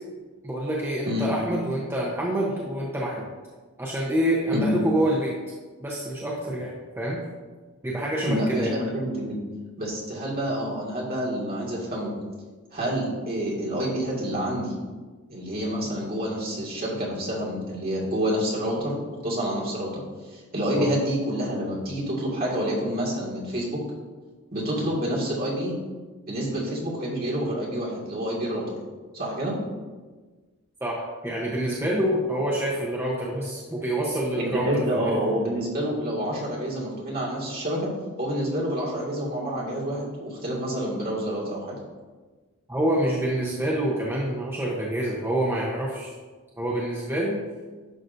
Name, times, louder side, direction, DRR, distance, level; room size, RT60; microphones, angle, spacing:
voice 1, 0.4-3.3 3.8-5.4 5.8-6.7 7.0-7.2 7.8-8.7 20.8-20.9 30.8-35.2 42.7-46.1 46.6-47.4, right 1 dB, 10° right, -5 dB, 0.8 m, -27 dB
voice 2, 8.2-9.4 9.8-12.1 12.7-14.7 15.3-19.0 19.2-20.0 20.3-23.8 24.5-25.7 26.3-28.8 29.1-29.6 34.5-37.9 38.2-41.8, equal, 45° right, -5 dB, 2.0 m, -28 dB
11.0 x 6.0 x 2.6 m, 1.3 s
head